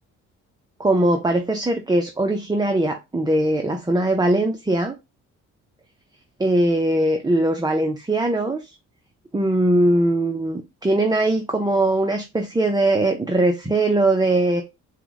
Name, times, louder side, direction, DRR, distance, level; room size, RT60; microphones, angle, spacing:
voice 1, 0.8-4.9 6.4-8.7 9.3-14.6, right 1 dB, 15° right, 0.7 m, -20 dB
4.5 x 2.3 x 3.9 m
cardioid pair, 90°, 30 cm